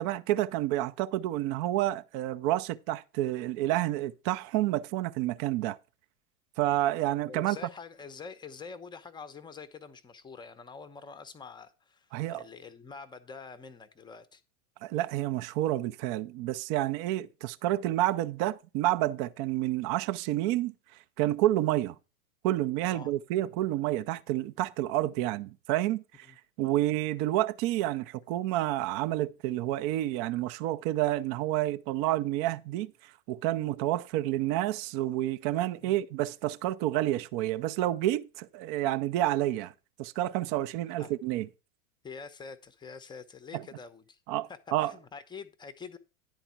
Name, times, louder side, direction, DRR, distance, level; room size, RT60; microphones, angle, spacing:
voice 1, 0.0-5.8 6.6-7.6 12.1-12.4 14.8-20.7 21.2-22.0 22.4-26.3 26.6-39.7 40.0-41.5 43.5-43.6 44.3-44.9, right 14 dB, 35° right, 0.4 m, -29 dB
voice 2, 7.2-14.4 22.8-23.1 26.3-26.4 35.8-36.0 40.6-40.7 41.0-41.1 42.0-44.2 44.5-46.0, left 5 dB, 10° left, 0.6 m, -46 dB
10.5 x 4.0 x 5.8 m
hypercardioid pair, 105°, 43 cm